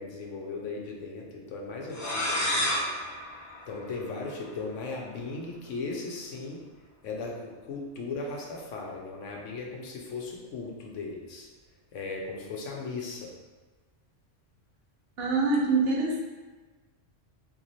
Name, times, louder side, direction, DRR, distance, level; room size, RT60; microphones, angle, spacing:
voice 1, 0.0-2.7 3.7-6.6 7.0-11.5 11.9-13.3, left 3 dB, 90° left, -1 dB, 1.0 m, -37 dB
sound 1, 1.9-4.5, left 1 dB, 20° left, 0.5 m, -31 dB
voice 2, 15.2-16.2, right 3 dB, 65° right, -1 dB, 0.8 m, -25 dB
3.1 x 2.6 x 4.0 m, 1.3 s
omnidirectional pair, 1.2 m